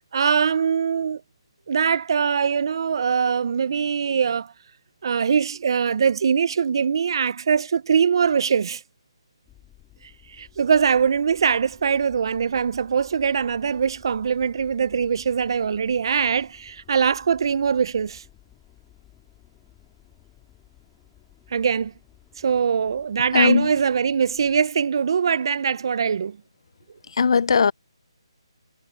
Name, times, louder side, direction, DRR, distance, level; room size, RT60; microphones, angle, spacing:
voice 1, 0.1-1.2 1.7-4.5 5.0-8.8 10.3-18.2 21.5-21.9 22.4-26.4, right 6 dB, 50° right, 0.6 m, -22 dB
sound 1, 9.4-24.6, left 14 dB, 15° left, 2.7 m, -55 dB
voice 2, 23.3-23.7 27.2-27.7, left 5 dB, 60° left, 0.5 m, -18 dB
hypercardioid pair, 160°, 3 cm